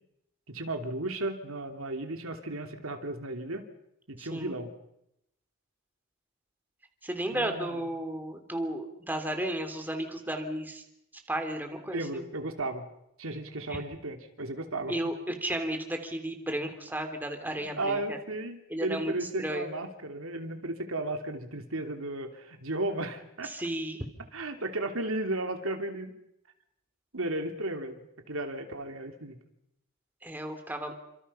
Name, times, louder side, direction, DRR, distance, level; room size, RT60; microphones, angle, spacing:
voice 1, 0.5-3.7 4.1-4.7 7.3-7.8 11.9-12.9 13.2-14.9 17.8-23.5 24.3-26.1 27.1-29.4, right 2 dB, 75° right, 5 dB, 3.0 m, -34 dB
voice 2, 4.2-4.6 7.0-10.8 11.3-12.3 13.7-13.8 14.9-18.2 18.7-19.1 19.4-19.7 23.4-24.1 30.2-30.9, right 1 dB, 10° right, 5 dB, 3.2 m, -34 dB
29.5 x 26.5 x 5.7 m, 0.81 s
head